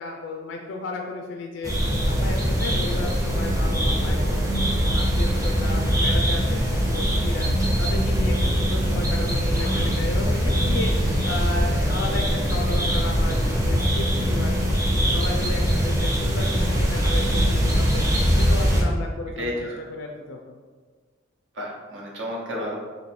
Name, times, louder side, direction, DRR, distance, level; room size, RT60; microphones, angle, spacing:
voice 1, 0.0-1.7 2.1-4.4 4.7-7.5 7.8-14.8 15.1-18.0 18.3-20.6, left 3 dB, 75° left, 2 dB, 0.4 m, -34 dB
sound 1, 1.6-18.8, equal, 20° right, 0.6 m, -22 dB
Explosion, 9.3-9.9 10.7-14.5, equal, 45° right, 1.1 m, -39 dB
voice 2, 19.4-19.8 21.5-22.7, equal, 75° right, -3 dB, 0.9 m, -31 dB
3.0 x 2.7 x 4.3 m, 1.5 s
head